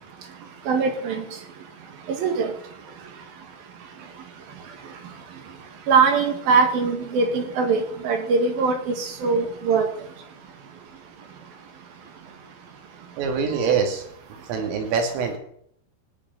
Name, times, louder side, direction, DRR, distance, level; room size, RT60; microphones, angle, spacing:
voice 1, 0.7-1.2 2.1-2.5 5.9-9.9, right 5 dB, 55° right, 6 dB, 3.5 m, -21 dB
voice 2, 13.2-14.0 14.5-15.4, right 6 dB, 80° right, 4 dB, 5.1 m, -24 dB
16.5 x 8.7 x 9.6 m, 0.67 s
omnidirectional pair, 5.8 m